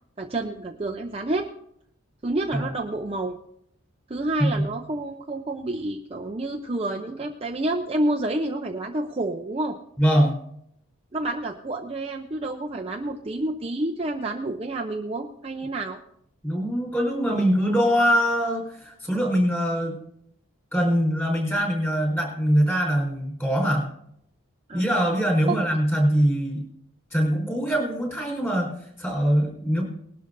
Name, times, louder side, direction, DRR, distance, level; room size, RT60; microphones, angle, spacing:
voice 1, 0.2-1.5 2.2-3.4 4.1-9.8 11.1-16.0 24.7-25.0 25.5-25.6, right 2 dB, 25° right, 2 dB, 0.6 m, -29 dB
voice 2, 10.0-10.4 16.4-20.0 20.7-23.8 24.7-26.6 27.1-29.8, equal, 10° left, -1 dB, 4.3 m, -23 dB
20.0 x 12.0 x 2.6 m, 0.71 s
head